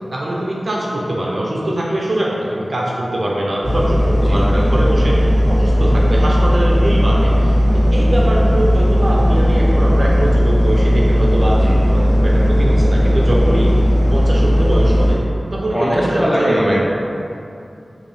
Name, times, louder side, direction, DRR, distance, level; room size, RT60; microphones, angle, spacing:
voice 1, 0.1-13.8 14.1-15.2 15.5-16.6, right 1 dB, 55° right, -4 dB, 0.5 m, -22 dB
sound 1, 3.6-15.1, equal, 80° left, 1.1 m, -15 dB
voice 2, 15.7-16.8, equal, ahead, -6 dB, 0.7 m, -19 dB
4.0 x 2.5 x 3.2 m, 2.6 s
wide cardioid pair, 75°, 0 cm